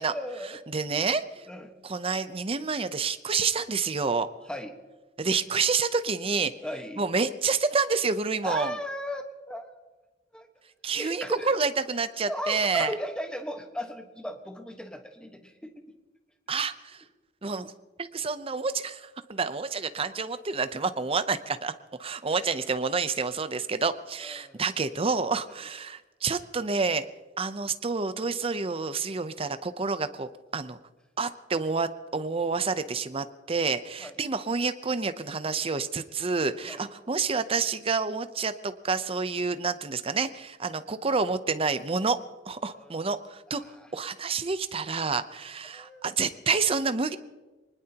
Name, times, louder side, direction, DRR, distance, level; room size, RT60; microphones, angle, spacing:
voice 1, 0.1-0.6 1.5-1.7 4.5-4.8 6.6-7.0 8.4-9.8 10.3-10.5 10.9-11.6 12.3-15.8 24.2-24.6 25.5-25.6 34.0-34.1 36.7-36.8 42.7-43.1 43.5-43.9 45.7-46.1, left 1 dB, 5° left, 5 dB, 1.3 m, -36 dB
voice 2, 0.7-1.4 1.8-4.3 5.2-6.5 7.0-8.8 10.8-12.9 16.5-17.0 17.4-17.7 18.0-21.7 22.0-27.1 27.4-30.8 31.2-42.2 42.5-43.6 43.9-47.2, right 4 dB, 30° right, 12 dB, 0.7 m, -28 dB
24.0 x 20.0 x 2.9 m, 1.2 s
head